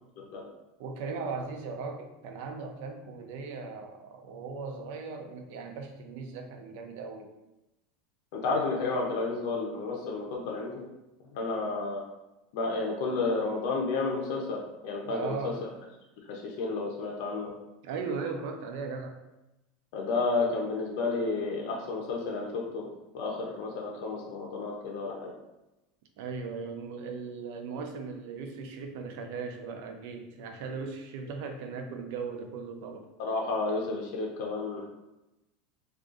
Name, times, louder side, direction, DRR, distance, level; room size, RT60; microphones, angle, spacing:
voice 1, 0.8-7.3 15.0-15.6 17.8-19.1 26.2-33.1, right 4 dB, 60° right, 4 dB, 0.4 m, -38 dB
voice 2, 8.3-10.8 11.3-12.0 12.5-15.5 16.3-17.5 19.9-22.8 23.1-25.3 33.2-34.8, left 3 dB, 60° left, -1 dB, 0.6 m, -31 dB
2.5 x 2.4 x 3.7 m, 0.96 s
supercardioid pair, 165°, 0 cm